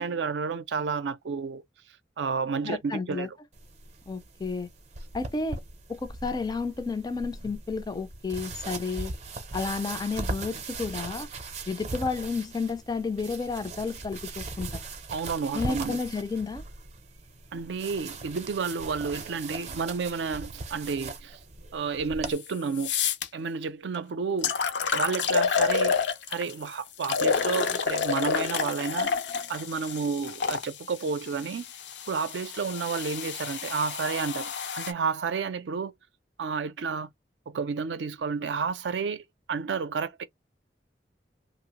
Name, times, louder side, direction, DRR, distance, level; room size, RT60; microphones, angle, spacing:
voice 1, 0.0-1.6 2.2-3.3 15.1-16.0 17.5-21.4 21.7-22.9 23.3-24.5 24.9-26.0 26.3-29.1 29.5-31.7 32.1-35.9 36.4-37.1 37.5-40.2, right 5 dB, 85° right, 0.4 m, -31 dB
voice 2, 2.6-3.3 4.1-4.7 5.1-5.6 5.9-9.1 9.5-11.3 11.7-14.8 15.5-16.6, left 4 dB, 20° left, 0.4 m, -31 dB
sound 1, 3.5-22.3, right 3 dB, 40° right, 0.6 m, -39 dB
sound 2, 22.3-22.4 22.8-23.3 23.9-24.0 24.4-26.5 27.0-30.7 31.5-34.9, left 6 dB, 90° left, 0.5 m, -28 dB
2.9 x 2.0 x 2.8 m
head